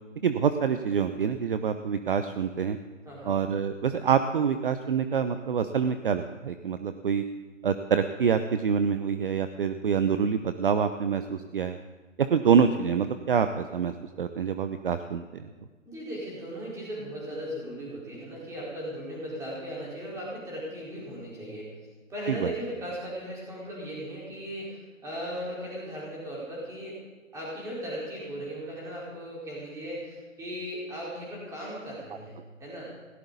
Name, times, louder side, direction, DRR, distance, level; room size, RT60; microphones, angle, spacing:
voice 1, 0.2-2.8 3.2-7.2 7.6-11.8 12.2-15.4 22.3-22.5, right 7 dB, 45° right, 9 dB, 0.8 m, -26 dB
voice 2, 3.0-3.4 15.8-21.7 22.1-27.0 27.3-32.9, equal, 10° right, -5 dB, 4.5 m, -37 dB
19.5 x 17.0 x 4.1 m, 1.4 s
hypercardioid pair, 155°, 39 cm